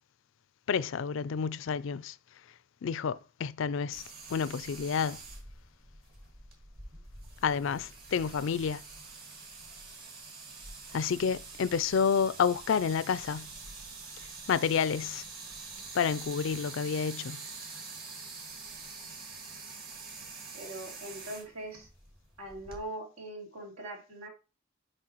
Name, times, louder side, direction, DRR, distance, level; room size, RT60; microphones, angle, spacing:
voice 1, 0.7-2.1 2.8-4.0 4.3-5.2 7.4-8.8 10.9-13.5 14.5-15.2 15.9-17.4, left 6 dB, 65° left, 0.4 m, -29 dB
sound 1, 3.9-22.8, right 4 dB, 45° right, 2.0 m, -46 dB
voice 2, 20.5-21.9 22.4-24.3, right 1 dB, 85° right, 3.0 m, -41 dB
7.5 x 5.0 x 3.0 m
head